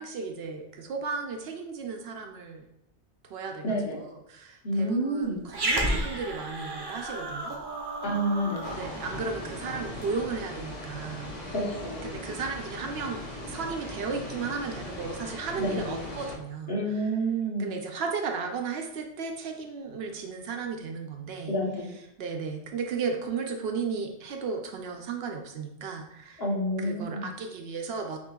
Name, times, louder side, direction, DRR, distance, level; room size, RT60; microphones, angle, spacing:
voice 1, 0.0-2.7 3.3-3.6 3.9-5.3 5.5-7.5 8.8-11.4 12.0-16.8 17.6-21.6 22.2-26.4 26.8-28.2, right 5 dB, 70° right, 3 dB, 0.8 m, -34 dB
voice 2, 3.6-4.0 4.6-5.4 8.0-8.8 11.5-12.3 15.6-16.1 16.7-17.8 21.5-21.9 26.4-27.3, right 1 dB, 60° left, -3 dB, 1.3 m, -29 dB
Growling, 5.5-10.1, right 1 dB, 35° right, 0.4 m, -33 dB
sound 1, 8.6-16.3, left 1 dB, 40° left, 1.0 m, -39 dB
6.3 x 2.8 x 2.3 m, 0.82 s
omnidirectional pair, 1.1 m